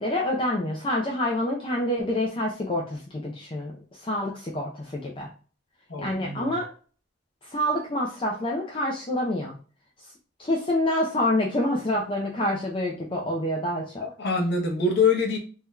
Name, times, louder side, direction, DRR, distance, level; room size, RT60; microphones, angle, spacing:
voice 1, 0.0-5.3 6.0-6.7 7.4-9.5 10.4-14.1, left 1 dB, 25° left, -2 dB, 0.5 m, -27 dB
voice 2, 5.9-6.5 14.0-15.4, left 4 dB, 60° left, 1 dB, 0.9 m, -25 dB
3.6 x 2.8 x 2.3 m, 0.39 s
head